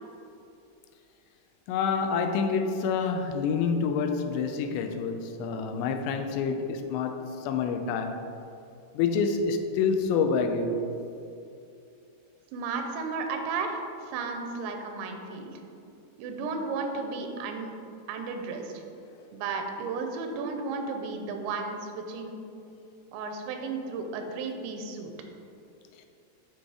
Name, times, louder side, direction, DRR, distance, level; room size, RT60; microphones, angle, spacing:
voice 1, 1.7-8.2 8.9-10.8, left 5 dB, 90° left, 6 dB, 2.8 m, -27 dB
voice 2, 12.5-13.8 14.1-15.6 16.2-17.7 18.1-18.7 19.3-22.4 23.1-25.1, right 4 dB, 90° right, 4 dB, 3.0 m, -33 dB
10.5 x 4.0 x 4.8 m, 2.7 s
omnidirectional pair, 4.9 m